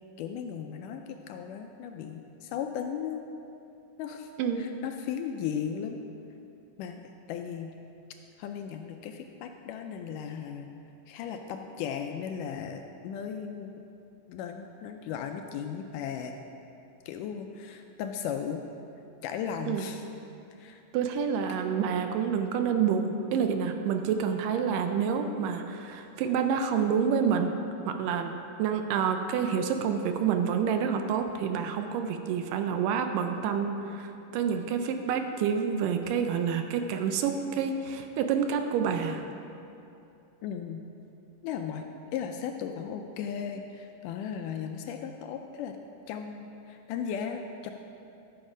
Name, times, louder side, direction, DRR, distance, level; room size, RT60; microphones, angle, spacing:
voice 1, 0.2-3.2 4.0-4.3 4.6-6.0 6.8-7.0 7.3-7.7 8.4-10.7 11.1-13.7 14.3-16.3 17.1-18.6 19.2-20.0 20.6-20.8 21.5-21.6 40.4-40.8 41.4-45.8 46.1-47.7, left 8 dB, 80° left, 5 dB, 1.9 m, -36 dB
voice 2, 20.9-27.5 27.9-28.3 28.6-39.2, right 7 dB, 80° right, 6 dB, 2.1 m, -28 dB
12.5 x 6.3 x 5.0 m, 2.7 s
omnidirectional pair, 4.0 m